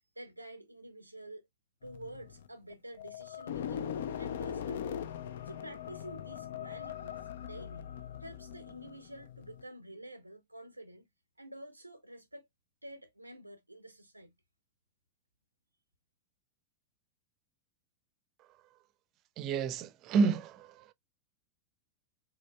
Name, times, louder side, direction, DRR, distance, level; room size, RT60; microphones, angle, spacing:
voice 1, 0.2-1.5 1.8-5.1 5.4-7.9 8.2-11.0 11.4-12.5 12.8-14.3, right 1 dB, 85° right, 0.5 m, -49 dB
sound 1, 1.8-9.6, left 9 dB, 60° left, 0.5 m, -41 dB
voice 2, 19.4-20.9, right 4 dB, 35° right, 0.5 m, -30 dB
5.1 x 3.8 x 2.2 m
figure-of-eight pair, 90°, 0 cm